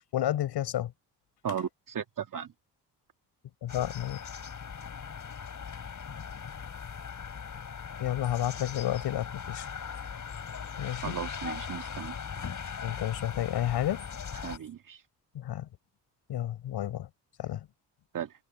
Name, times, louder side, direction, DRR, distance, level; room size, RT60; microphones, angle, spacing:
voice 1, 0.1-0.9 3.6-4.2 8.0-9.7 10.8-11.1 12.8-14.1 15.3-15.7 16.3-17.1 17.4-17.7, left 12 dB, 70° left, 6.0 m, -31 dB
voice 2, 1.4-2.5 11.0-12.2 14.3-15.0 18.1-18.3, right 8 dB, 50° right, 1.8 m, -36 dB
sound 1, 3.7-14.6, left 6 dB, 45° left, 5.3 m, -39 dB
supercardioid pair, 70°, 41 cm